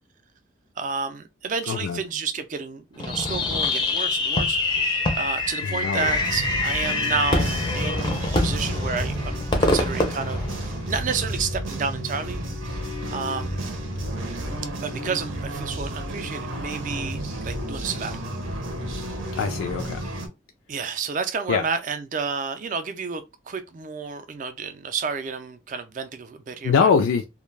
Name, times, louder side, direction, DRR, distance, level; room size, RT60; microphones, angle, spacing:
voice 1, 0.8-12.5 13.1-13.6 14.8-18.2 20.7-26.9, right 5 dB, 40° right, 0.4 m, -31 dB
voice 2, 1.7-2.0 5.6-6.1 19.4-20.0 21.5-21.6 26.6-27.3, left 6 dB, 85° left, 0.3 m, -22 dB
Fireworks, 3.0-11.1, left 2 dB, 25° left, 0.4 m, -25 dB
sound 1, 5.9-20.3, right 1 dB, 85° right, 0.7 m, -31 dB
2.3 x 2.1 x 3.2 m
head